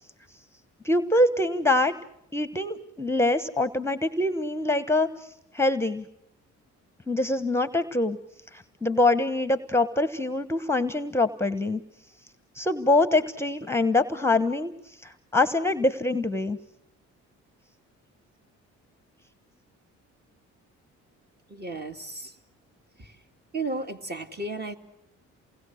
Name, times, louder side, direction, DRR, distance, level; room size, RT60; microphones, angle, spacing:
voice 1, 0.8-1.9 2.3-5.3 5.5-6.0 7.1-8.2 8.5-11.8 12.6-14.7 15.0-16.6, left 2 dB, 10° left, 12 dB, 1.0 m, -24 dB
voice 2, 21.5-22.3 23.0-23.2 23.5-24.8, right 2 dB, 35° right, 6 dB, 2.6 m, -34 dB
28.5 x 19.5 x 6.4 m, 0.84 s
cardioid pair, 90°, 30 cm